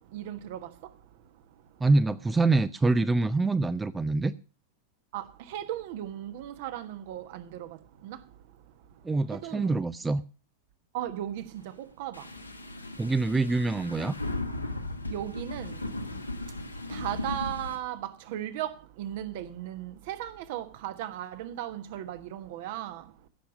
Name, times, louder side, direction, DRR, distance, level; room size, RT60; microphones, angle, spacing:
voice 1, 0.1-0.6 5.1-5.2 5.5-7.7 8.0-8.2 9.4-9.8 10.9-11.4 12.0-12.2 15.1-15.7 16.9-23.0, right 12 dB, 50° right, 1.3 m, -36 dB
voice 2, 1.8-4.3 9.0-10.2 13.0-14.2, right 3 dB, 10° right, 0.5 m, -25 dB
sound 1, 12.1-17.8, left 2 dB, 85° left, 1.6 m, -36 dB
15.5 x 7.1 x 6.3 m
figure-of-eight pair, 90°, 0 cm